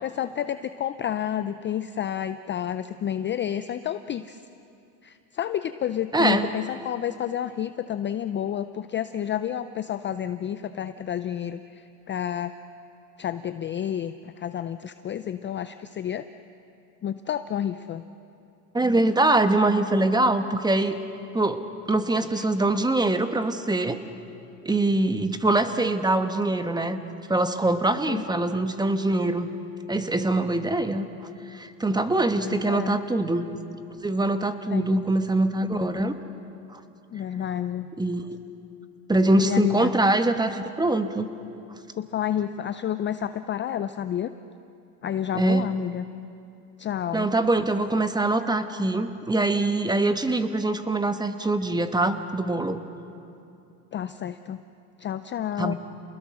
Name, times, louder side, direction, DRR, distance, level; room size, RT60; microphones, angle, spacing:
voice 1, 0.0-4.4 5.0-12.5 13.2-16.2 17.0-18.0 22.3-22.4 28.0-28.2 32.3-33.0 34.7-35.0 37.1-37.9 39.4-39.9 42.0-44.3 45.0-46.0 46.8-47.3 53.9-54.6 55.0-55.7, left 10 dB, 25° left, 11 dB, 0.5 m, -30 dB
voice 2, 6.1-6.5 18.7-20.9 21.3-21.6 21.9-24.0 24.6-27.0 27.3-29.5 29.9-31.1 31.5-33.5 34.0-36.1 36.7-36.8 38.0-38.4 39.1-41.3 45.3-45.7 47.1-52.8 55.6-55.7, right 2 dB, 10° right, 9 dB, 1.2 m, -23 dB
29.0 x 20.5 x 6.3 m, 2.7 s
supercardioid pair, 105°, 47 cm